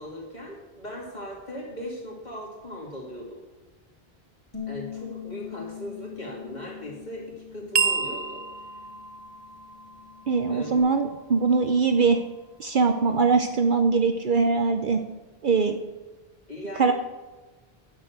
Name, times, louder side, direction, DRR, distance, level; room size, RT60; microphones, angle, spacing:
voice 1, 0.0-3.4 4.7-8.4 10.5-10.8 16.5-16.9, equal, 45° left, -3 dB, 2.9 m, -38 dB
Bass guitar, 4.5-10.8, left 9 dB, 25° left, 2.2 m, -42 dB
sound 1, 7.7-12.4, right 6 dB, 35° right, 0.4 m, -32 dB
voice 2, 10.3-12.2 12.6-15.0 15.4-15.8 16.8-16.9, right 4 dB, 55° right, 7 dB, 0.8 m, -22 dB
9.7 x 6.8 x 8.0 m, 1.2 s
omnidirectional pair, 1.0 m